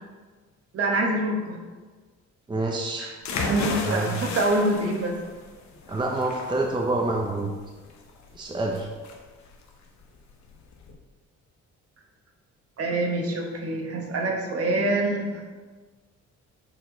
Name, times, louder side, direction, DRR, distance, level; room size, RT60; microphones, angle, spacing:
voice 1, 0.7-1.6 3.0-3.1 3.4-5.1 12.8-15.4, right 2 dB, 50° right, 1 dB, 1.2 m, -25 dB
voice 2, 2.5-3.1 3.7-4.1 5.9-7.5 8.3-8.9, right 2 dB, 15° right, 0 dB, 0.7 m, -27 dB
sound 1, 3.2-10.9, left 4 dB, 70° left, 1.0 m, -34 dB
6.2 x 4.6 x 3.9 m, 1.4 s
cardioid pair, 90°, 30 cm